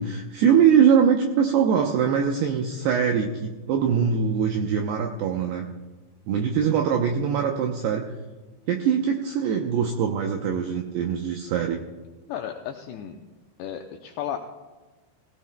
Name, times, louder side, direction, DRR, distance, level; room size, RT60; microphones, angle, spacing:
voice 1, 0.0-5.7 6.3-8.1 8.7-11.8, right 7 dB, 85° right, 2 dB, 2.3 m, -22 dB
voice 2, 12.3-13.2 13.6-14.4, left 10 dB, 85° left, 3 dB, 2.4 m, -33 dB
19.0 x 16.5 x 2.2 m, 1.2 s
omnidirectional pair, 5.6 m